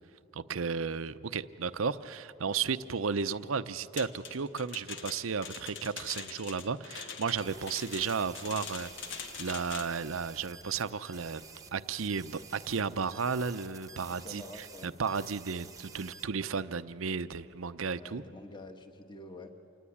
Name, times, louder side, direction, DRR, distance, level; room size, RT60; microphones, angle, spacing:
voice 1, 0.3-8.9 9.4-11.4 11.7-18.2, right 5 dB, 85° right, 13 dB, 0.7 m, -34 dB
sound 1, 4.0-10.0, left 6 dB, 65° left, 1.3 m, -43 dB
sound 2, 7.4-16.3, right 5 dB, 20° right, 1.1 m, -51 dB
voice 2, 14.2-14.9 17.9-19.5, left 2 dB, 25° left, 6 dB, 1.6 m, -47 dB
27.5 x 19.5 x 8.6 m, 2.8 s
head